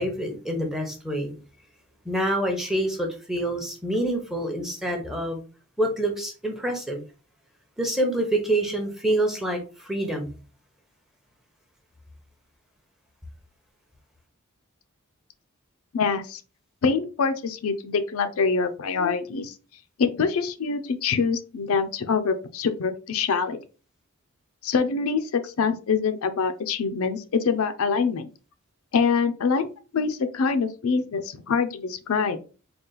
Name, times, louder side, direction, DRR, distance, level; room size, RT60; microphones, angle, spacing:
voice 1, 0.0-1.3 2.0-5.4 5.8-7.0 7.8-10.3, right 1 dB, ahead, 3 dB, 0.7 m, -26 dB
voice 2, 15.9-16.4 16.8-19.5 20.0-23.6 24.6-28.3 28.9-29.7 29.9-32.4, left 5 dB, 70° left, 9 dB, 0.4 m, -25 dB
3.8 x 2.4 x 3.8 m, 0.35 s
head